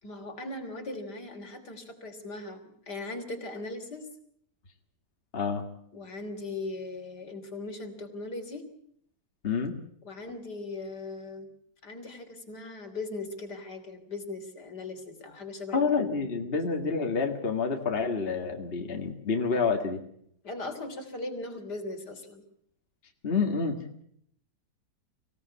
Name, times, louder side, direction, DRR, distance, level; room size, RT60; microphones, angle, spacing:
voice 1, 0.0-4.1 5.9-8.6 10.0-11.5 11.8-15.8 20.4-22.4, left 2 dB, 65° left, 4 dB, 3.9 m, -39 dB
voice 2, 5.3-5.6 9.4-9.8 15.7-20.0 23.2-24.0, left 5 dB, 35° left, 3 dB, 2.1 m, -28 dB
25.0 x 16.5 x 8.4 m, 0.68 s
omnidirectional pair, 1.9 m